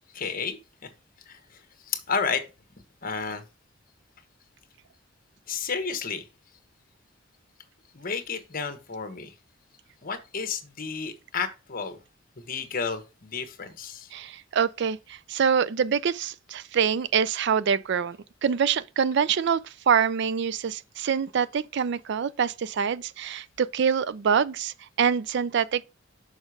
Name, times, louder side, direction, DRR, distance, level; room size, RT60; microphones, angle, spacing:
voice 1, 0.1-0.9 1.3-1.4 1.9-2.4 3.0-3.4 5.5-6.2 7.9-9.3 10.0-12.0 12.4-14.1, left 5 dB, 45° left, 1.1 m, -31 dB
voice 2, 14.1-25.8, right 7 dB, 60° right, 0.4 m, -25 dB
6.4 x 5.0 x 4.8 m
head